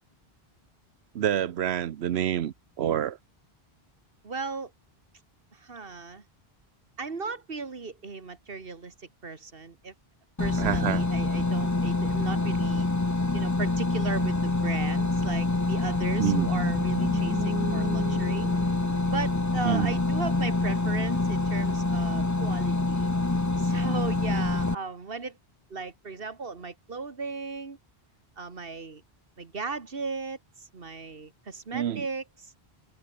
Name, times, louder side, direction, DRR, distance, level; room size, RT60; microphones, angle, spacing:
voice 1, 1.1-3.2 10.6-11.0 16.2-16.5 19.6-19.9 31.7-32.0, right 10 dB, 90° right, 1.0 m, -27 dB
voice 2, 4.2-4.7 5.5-6.2 7.0-9.9 10.4-12.9 13.3-18.5 19.1-23.1 23.6-25.4 25.7-27.8 28.4-29.0 29.4-32.5, right 4 dB, 65° right, 2.1 m, -37 dB
sound 1, 10.4-24.7, left 2 dB, 20° left, 1.0 m, -26 dB
sound 2, 15.9-20.1, right 1 dB, 15° right, 1.9 m, -37 dB
omnidirectional pair, 1.0 m